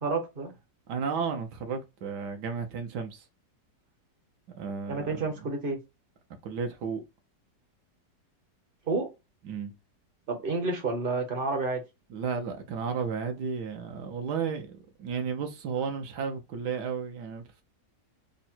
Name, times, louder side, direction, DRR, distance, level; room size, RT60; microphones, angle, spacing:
voice 1, 0.0-0.5 4.9-5.8 8.9-9.1 10.3-11.8, right 3 dB, 45° right, 0.7 m, -29 dB
voice 2, 0.9-3.3 4.5-5.1 5.4-5.5 6.4-7.0 9.4-9.7 12.1-17.6, right 6 dB, 75° right, 1.2 m, -33 dB
3.6 x 2.1 x 4.2 m
omnidirectional pair, 1.9 m